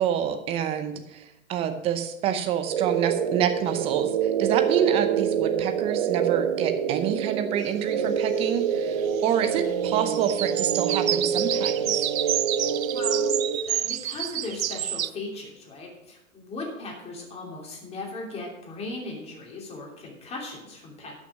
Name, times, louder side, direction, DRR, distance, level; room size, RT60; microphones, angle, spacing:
voice 1, 0.0-9.0 9.2-12.0, right 9 dB, 15° right, 8 dB, 0.7 m, -27 dB
sound 1, 2.7-13.6, right 7 dB, 40° right, 0.9 m, -26 dB
sound 2, 8.5-9.4 9.7-15.1, right 11 dB, 80° right, 0.5 m, -29 dB
voice 2, 13.5-21.1, left 2 dB, 15° left, -1 dB, 2.8 m, -38 dB
12.0 x 6.3 x 6.1 m, 0.89 s
hypercardioid pair, 130°, 41 cm